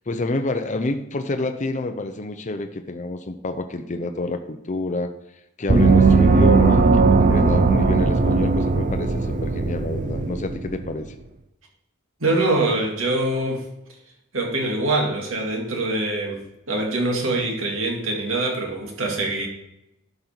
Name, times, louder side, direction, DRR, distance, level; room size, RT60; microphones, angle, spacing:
voice 1, 0.1-5.1 5.6-11.1, left 2 dB, 35° left, 7 dB, 0.6 m, -28 dB
Gong, 5.7-10.9, right 4 dB, 40° right, 0.6 m, -18 dB
voice 2, 12.2-13.7 14.3-19.5, right 2 dB, 70° right, 0 dB, 2.2 m, -24 dB
12.0 x 5.4 x 4.5 m, 0.88 s
head